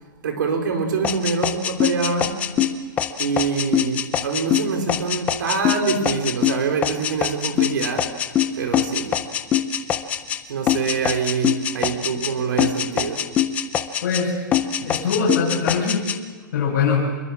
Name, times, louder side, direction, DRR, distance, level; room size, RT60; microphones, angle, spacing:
voice 1, 0.2-2.4 3.2-8.2 8.6-9.2 10.5-13.3, right 5 dB, 65° right, 5 dB, 4.6 m, -25 dB
sound 1, 1.0-10.4 10.7-12.3 12.6-14.2 14.5-16.2, left 10 dB, 15° left, 0.7 m, -23 dB
voice 2, 14.0-14.5 14.8-16.1 16.5-17.2, left 5 dB, 50° left, -5 dB, 7.7 m, -22 dB
27.0 x 22.0 x 7.4 m, 1.4 s
hypercardioid pair, 175°, 11 cm